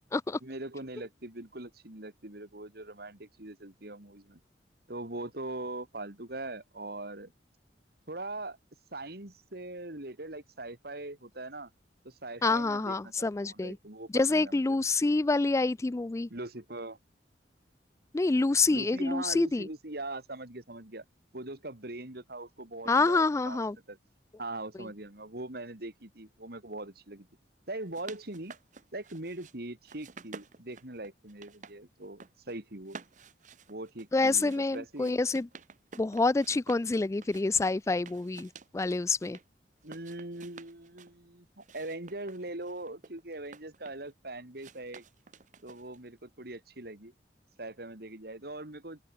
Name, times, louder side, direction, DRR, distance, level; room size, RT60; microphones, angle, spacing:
voice 1, 0.4-4.4 4.9-7.3 8.1-8.6 8.9-11.7 12.0-14.6 16.3-17.0 18.7-21.0 21.3-23.6 23.9-24.0 24.4-27.3 27.7-28.5 28.9-33.0 33.7-35.2 39.8-45.0 45.6-47.1 47.6-49.0, right 2 dB, 60° right, 2.9 m, -41 dB
voice 2, 12.4-13.8 14.1-16.3 18.1-19.7 22.9-23.8 34.1-35.5 36.0-39.4, left 3 dB, 15° left, 0.3 m, -27 dB
sound 1, 27.7-29.5 29.9-31.8 32.0-32.6 32.9-36.9 37.2-39.4 39.8-41.1 41.6-44.1 44.6-46.1, right 5 dB, 45° right, 1.0 m, -51 dB
open air
head